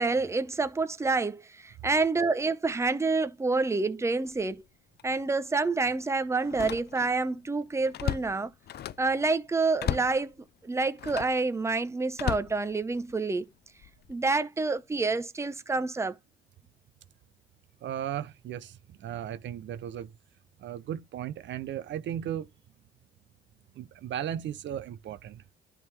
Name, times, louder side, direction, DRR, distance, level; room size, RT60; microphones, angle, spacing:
voice 1, 0.0-4.6 5.0-8.5 9.0-10.3 10.6-13.5 14.1-16.2, right 3 dB, 15° right, 0.7 m, -28 dB
Slam, 4.3-4.5 5.0-5.1 6.4-7.2 7.6-9.1 9.8-10.2 11.0-11.4 12.1-13.2 13.8-14.1, left 11 dB, 55° left, 0.4 m, -35 dB
voice 2, 17.8-20.1 20.6-22.5 23.7-25.4, right 10 dB, 65° right, 0.6 m, -36 dB
11.0 x 3.7 x 3.3 m
cardioid pair, 90°, 20 cm